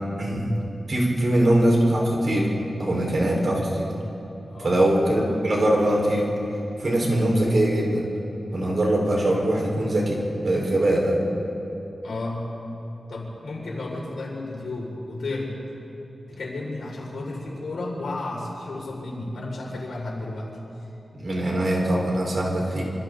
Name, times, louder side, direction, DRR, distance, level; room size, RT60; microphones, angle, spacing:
voice 1, 0.2-0.5 0.9-2.5 2.8-3.9 4.6-6.3 6.8-8.1 8.5-11.2 21.1-22.8, right 1 dB, 50° right, -2 dB, 5.1 m, -22 dB
voice 2, 4.5-4.8 12.0-12.5 13.1-15.5 16.3-20.5, left 2 dB, 80° left, -3 dB, 5.9 m, -32 dB
26.5 x 26.5 x 4.1 m, 2.9 s
wide cardioid pair, 135°, 0 cm